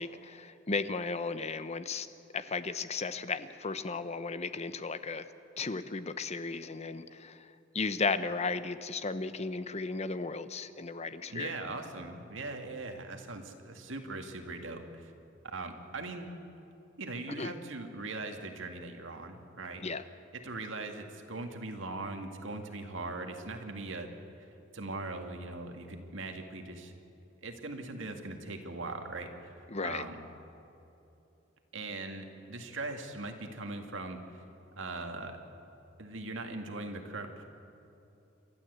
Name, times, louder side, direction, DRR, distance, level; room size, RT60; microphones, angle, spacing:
voice 1, 0.0-2.1 2.3-5.3 5.6-11.5 17.4-17.5 19.8-20.0 29.7-30.0, left 4 dB, 35° left, 12 dB, 0.8 m, -35 dB
voice 2, 11.3-15.1 15.4-16.3 17.0-19.8 20.4-24.1 24.7-26.9 27.4-29.5 29.8-30.2 31.7-34.2 34.8-35.4 36.0-37.5, right 2 dB, 70° right, 5 dB, 2.1 m, -40 dB
28.5 x 13.0 x 8.2 m, 2.9 s
head